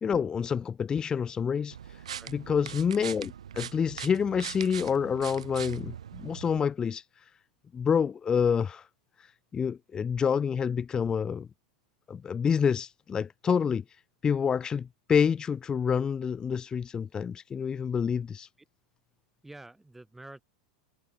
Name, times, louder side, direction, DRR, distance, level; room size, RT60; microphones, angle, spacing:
voice 1, 0.0-2.0 2.3-7.0 7.7-8.9 9.2-11.5 12.1-13.8 14.2-18.5, left 7 dB, 20° left, 0.5 m, -28 dB
sound 1, 1.7-6.6, right 9 dB, 75° right, 0.4 m, -41 dB
voice 2, 19.4-20.4, right 2 dB, 5° right, 2.1 m, -48 dB
figure-of-eight pair, 85°, 3 cm